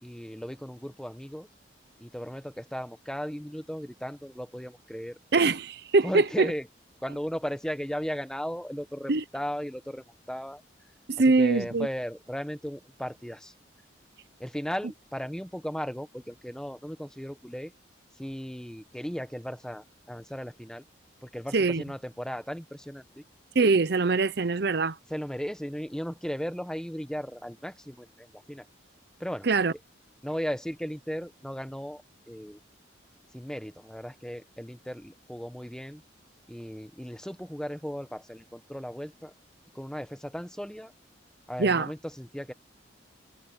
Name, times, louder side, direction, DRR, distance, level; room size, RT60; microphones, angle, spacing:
voice 1, 0.0-1.5 2.0-5.2 6.0-6.7 7.0-10.6 11.4-13.5 14.4-17.7 18.2-20.8 21.2-23.2 25.1-28.7 29.2-29.5 30.2-32.0 32.3-32.6 33.3-36.0 36.5-39.3 39.7-40.9 41.5-42.5, equal, 5° left, 1.2 m, -36 dB
voice 2, 5.3-6.5 9.1-9.2 11.1-11.9 21.5-21.8 23.5-25.0 29.4-29.7 41.6-41.9, right 3 dB, 55° right, 0.7 m, -23 dB
head